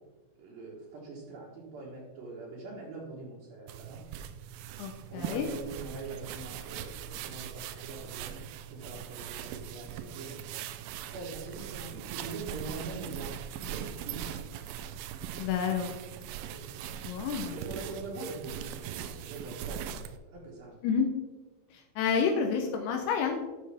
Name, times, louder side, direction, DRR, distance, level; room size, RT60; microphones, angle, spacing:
voice 1, 0.4-4.0 5.1-8.4 8.7-10.4 11.1-14.5 16.4-16.9 17.5-20.8, right 3 dB, 70° right, -5 dB, 3.0 m, -43 dB
sound 1, 3.7-20.2, right 10 dB, 85° right, 2.0 m, -41 dB
voice 2, 4.8-5.5 15.4-16.0 17.0-17.6 20.8-21.1 21.7-23.4, left 6 dB, 80° left, 3 dB, 2.7 m, -29 dB
11.5 x 6.4 x 3.4 m, 1.3 s
omnidirectional pair, 4.6 m